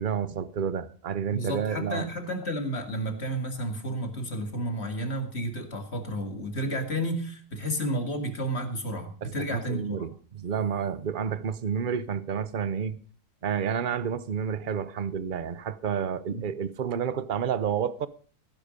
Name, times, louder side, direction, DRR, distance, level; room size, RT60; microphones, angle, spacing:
voice 1, 0.0-2.0 9.2-13.0 13.4-18.1, right 7 dB, 45° right, 0.8 m, -30 dB
voice 2, 1.3-10.1 16.3-16.4, equal, 40° left, 2.4 m, -31 dB
16.0 x 10.0 x 5.2 m
omnidirectional pair, 1.7 m